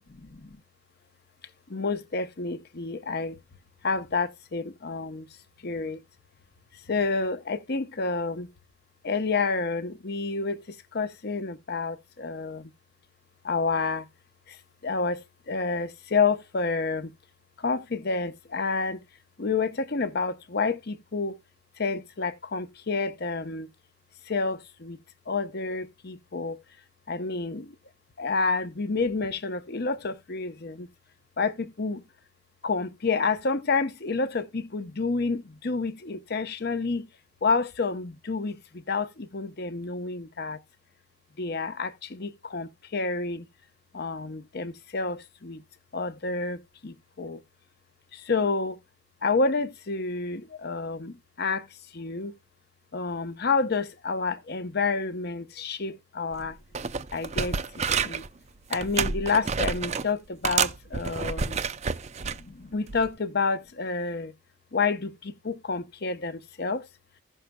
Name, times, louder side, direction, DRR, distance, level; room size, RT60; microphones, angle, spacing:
voice 1, 0.1-0.6 1.7-3.4 3.8-5.3 5.6-6.0 6.9-8.5 9.0-12.7 13.4-14.0 14.5-14.6 14.8-17.1 17.6-19.0 19.4-21.4 21.8-23.7 24.3-25.0 25.3-26.6 27.1-27.7 28.2-30.9 31.4-32.0 32.6-37.1 37.4-40.6 41.4-43.5 43.9-45.6 45.9-47.4 48.1-48.8 49.2-51.7 51.9-52.3 52.9-56.6 57.1-57.6 58.0-58.2 58.7-61.6 62.2-64.3 64.7-66.8, left 4 dB, 55° left, 0.8 m, -29 dB
sound 1, 56.3-56.5 56.7-58.3 58.7-60.1 60.4-62.4 62.9-63.1, right 5 dB, 35° right, 0.5 m, -29 dB
16.0 x 6.5 x 2.3 m
head